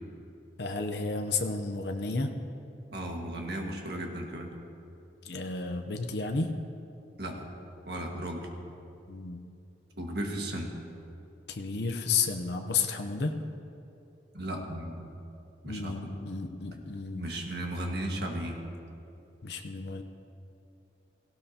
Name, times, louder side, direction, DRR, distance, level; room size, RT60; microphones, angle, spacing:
voice 1, 0.6-2.3 5.2-6.5 9.1-9.4 11.5-13.3 15.7-17.2 19.4-20.0, left 4 dB, 65° left, 5 dB, 0.7 m, -32 dB
voice 2, 2.9-4.5 7.2-7.5 7.8-8.4 10.0-10.7 14.3-15.1 15.6-16.1 17.2-18.6, right 1 dB, 60° right, 1 dB, 1.7 m, -35 dB
17.5 x 15.5 x 2.9 m, 2.7 s
head